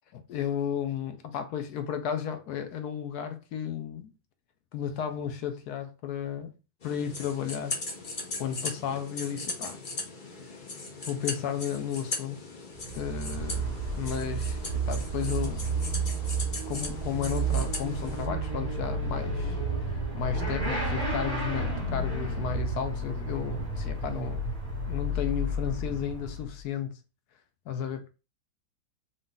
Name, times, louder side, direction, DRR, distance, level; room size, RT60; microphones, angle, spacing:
voice 1, 0.1-4.1 4.7-6.6 6.8-7.8 8.4-9.8 10.4-10.6 11.1-12.5 12.9-13.7 14.0-15.7 16.7-24.4 24.9-27.0 27.7-28.1, left 8 dB, 70° left, 1.0 m, -33 dB
sound 1, 6.8-18.2, left 3 dB, 45° left, 0.6 m, -38 dB
Motorcycle / Accelerating revving vroom, 12.8-26.6, right 2 dB, 10° right, 1.4 m, -31 dB
3.9 x 2.5 x 3.7 m
omnidirectional pair, 2.1 m